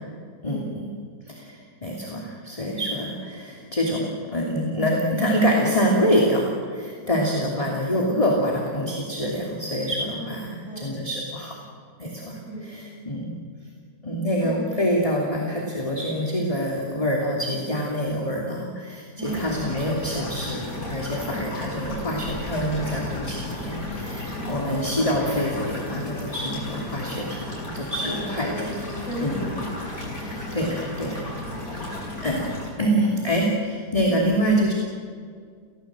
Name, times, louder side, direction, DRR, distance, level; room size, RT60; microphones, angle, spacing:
voice 1, 0.4-0.9 1.3-11.5 12.0-13.4 14.0-28.7 29.2-29.4 30.1-31.3 31.7-31.9 32.2-32.5 32.8-34.7, equal, 20° left, -2 dB, 3.0 m, -26 dB
voice 2, 14.4-14.7 19.2-19.5 21.2-21.3 24.4-24.9 28.0-30.0 31.4-31.6, right 1 dB, 5° right, -3 dB, 7.4 m, -35 dB
sound 1, 19.2-32.7, left 2 dB, 60° left, 7.4 m, -34 dB
29.0 x 17.0 x 7.7 m, 2.1 s
omnidirectional pair, 1.7 m